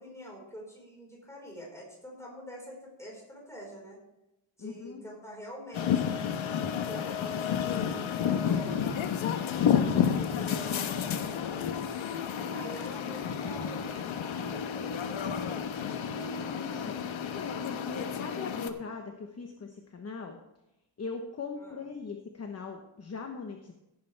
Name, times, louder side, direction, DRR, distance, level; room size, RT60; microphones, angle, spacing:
voice 1, 0.0-4.0 4.6-6.2 6.9-9.1 9.9-11.8 12.2-16.2 21.6-21.8, equal, 5° left, -2 dB, 4.7 m, -47 dB
voice 2, 4.6-5.0 16.4-16.9 17.3-20.4 21.0-23.7, left 4 dB, 35° left, 4 dB, 1.0 m, -40 dB
sound 1, 5.7-18.7, left 8 dB, 85° left, 1.2 m, -31 dB
16.5 x 9.8 x 3.4 m, 0.91 s
wide cardioid pair, 160°, 46 cm